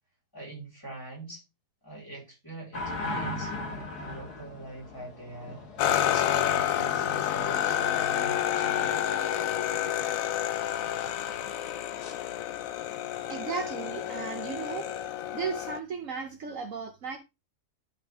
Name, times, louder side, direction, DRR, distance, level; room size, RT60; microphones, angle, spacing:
voice 1, 0.3-1.4 1.8-5.6 6.0-9.0, right 2 dB, 15° left, 4.3 m, -43 dB
sound 1, 2.7-8.6 12.0-12.2, left 2 dB, 85° left, 2.1 m, -39 dB
sound 2, 5.8-15.8, left 10 dB, 65° left, 1.0 m, -29 dB
voice 2, 13.3-14.9 15.3-17.2, right 6 dB, 60° right, 1.2 m, -35 dB
11.5 x 5.3 x 3.5 m
omnidirectional pair, 1.7 m